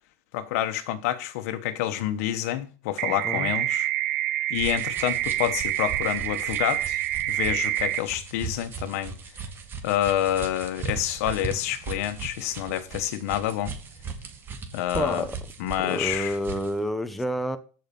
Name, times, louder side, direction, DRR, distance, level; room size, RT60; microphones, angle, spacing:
voice 1, 0.3-3.9 4.5-7.0 7.3-9.1 9.8-13.7 14.7-15.2 15.6-16.4, left 12 dB, 75° left, 1.3 m, -28 dB
voice 2, 3.0-3.5 14.9-15.4 15.9-17.6, equal, ahead, 0.9 m, -29 dB
sound 1, 3.0-8.0, right 14 dB, 75° right, 0.9 m, -27 dB
sound 2, 4.5-16.8, right 5 dB, 30° right, 2.0 m, -38 dB
14.5 x 5.7 x 5.5 m
supercardioid pair, 145°, 8 cm